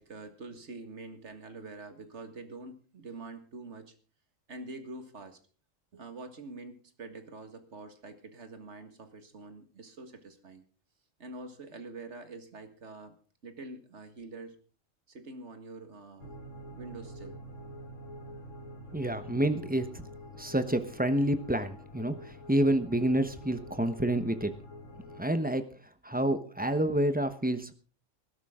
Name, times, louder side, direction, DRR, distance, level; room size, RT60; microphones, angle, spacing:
voice 1, 0.0-3.9 4.5-5.4 5.9-10.6 11.2-13.2 13.4-14.6 15.1-16.3 16.7-17.4, right 3 dB, 60° right, 8 dB, 2.0 m, -45 dB
sound 1, 16.2-25.2, left 1 dB, 75° left, 1.9 m, -47 dB
voice 2, 18.9-19.9 20.4-24.5 25.2-25.6 26.0-27.7, right 1 dB, 10° right, 10 dB, 0.9 m, -28 dB
19.5 x 12.0 x 3.7 m, 0.38 s
omnidirectional pair, 1.3 m